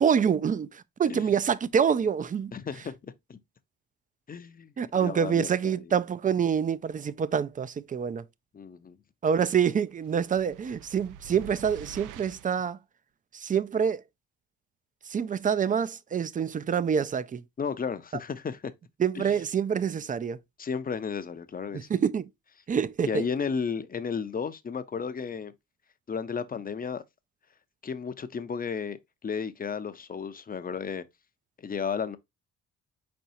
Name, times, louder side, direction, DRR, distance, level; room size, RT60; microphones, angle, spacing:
voice 1, 0.0-2.5 4.8-8.2 9.2-12.8 13.3-14.0 15.1-17.4 19.0-20.4 21.9-22.3 22.7-23.3, right 7 dB, 25° right, 0.4 m, -26 dB
voice 2, 2.5-3.4 4.3-5.9 8.5-9.0 17.6-18.7 19.1-19.4 20.6-22.0 23.1-25.5 26.1-27.0 27.8-31.1 31.6-32.2, left 6 dB, 30° left, 0.6 m, -33 dB
sound 1, 10.0-12.7, right 10 dB, 90° right, 0.5 m, -46 dB
4.6 x 4.4 x 2.6 m
cardioid pair, 90°, 30 cm